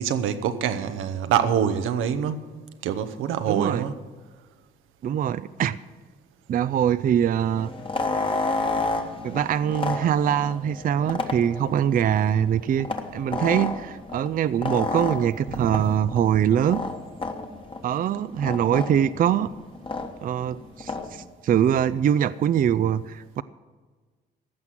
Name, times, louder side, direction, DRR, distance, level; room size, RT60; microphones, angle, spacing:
voice 1, 0.0-2.5 2.8-3.9 15.5-15.8, right 8 dB, 90° right, 10 dB, 0.9 m, -25 dB
voice 2, 3.5-3.8 5.0-5.8 6.5-7.7 9.2-12.9 13.1-16.8 17.8-19.5 20.2-23.4, right 9 dB, 45° right, 15 dB, 0.4 m, -23 dB
sound 1, 7.6-21.2, left 3 dB, 25° left, 1.3 m, -31 dB
15.0 x 5.9 x 9.5 m, 1.4 s
cardioid pair, 90°, 20 cm